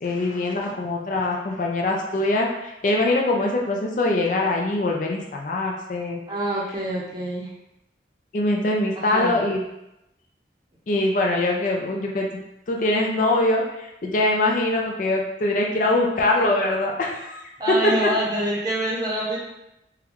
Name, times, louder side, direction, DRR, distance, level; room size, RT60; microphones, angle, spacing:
voice 1, 0.0-6.2 8.3-9.6 10.9-12.3 12.7-17.4 17.7-18.1, left 2 dB, 45° left, 0 dB, 0.4 m, -23 dB
voice 2, 6.3-7.5 9.0-9.4 17.6-19.4, right 1 dB, 20° right, -4 dB, 0.7 m, -26 dB
3.8 x 2.2 x 3.0 m, 0.88 s
head